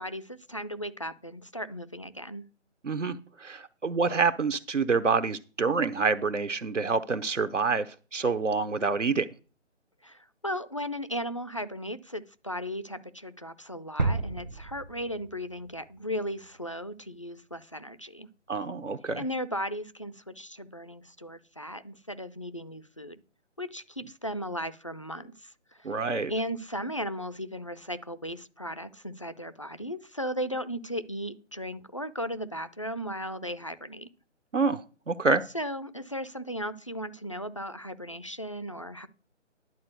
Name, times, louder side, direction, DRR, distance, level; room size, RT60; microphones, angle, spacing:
voice 1, 0.0-2.4 10.0-18.3 19.2-23.2 23.6-26.0 26.3-34.1 35.5-39.1, equal, 25° left, 0.5 m, -36 dB
voice 2, 2.8-9.3 18.5-19.2 25.8-26.3 34.5-35.4, right 4 dB, 75° right, 0.9 m, -27 dB
sound 1, 14.0-15.9 16.3-16.4, right 3 dB, 40° right, 0.6 m, -32 dB
11.0 x 4.3 x 7.8 m
figure-of-eight pair, 150°, 37 cm